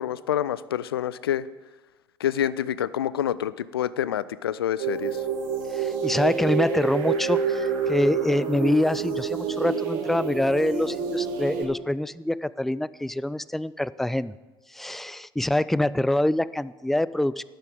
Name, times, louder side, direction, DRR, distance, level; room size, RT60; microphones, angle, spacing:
voice 1, 0.0-1.4 2.2-5.2 6.1-6.2, left 10 dB, 80° left, 18 dB, 0.4 m, -27 dB
sound 1, 4.8-11.6, right 6 dB, 60° right, 2.0 m, -28 dB
voice 2, 5.7-14.3 14.7-17.4, left 1 dB, ahead, 18 dB, 0.3 m, -25 dB
11.5 x 9.1 x 5.3 m, 1.2 s
figure-of-eight pair, 65°, 12 cm